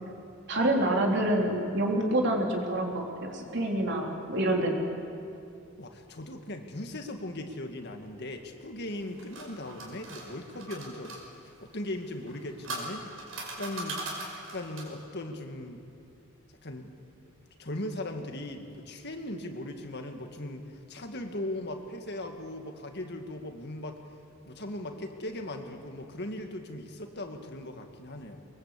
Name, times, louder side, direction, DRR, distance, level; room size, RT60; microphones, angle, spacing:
voice 1, 0.5-4.8, right 1 dB, 60° right, 1 dB, 3.6 m, -27 dB
voice 2, 5.8-11.2 11.4-14.0 14.3-15.8 16.6-16.9 17.6-24.0 24.5-28.4, left 1 dB, 55° left, 5 dB, 2.0 m, -38 dB
sound 1, 8.9-11.2 12.2-15.0, right 2 dB, 80° right, 5.8 m, -40 dB
23.5 x 21.5 x 8.4 m, 2.7 s
head